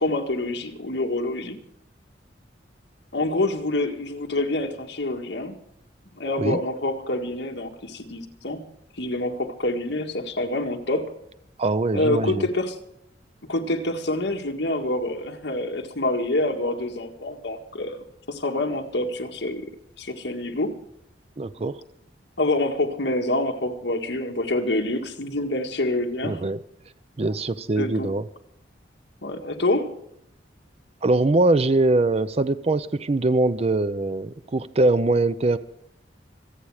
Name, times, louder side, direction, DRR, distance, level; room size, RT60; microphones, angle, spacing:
voice 1, 0.0-1.6 3.1-5.6 6.2-8.6 9.0-11.1 11.9-12.8 13.5-18.0 18.3-19.7 20.0-20.7 22.4-26.4 27.8-28.1 29.2-29.9, left 2 dB, 70° left, 3 dB, 1.8 m, -26 dB
voice 2, 11.6-12.5 21.4-21.8 26.2-26.6 27.2-28.2 31.0-35.6, right 2 dB, 35° right, 14 dB, 0.5 m, -22 dB
26.0 x 8.6 x 4.8 m, 0.76 s
head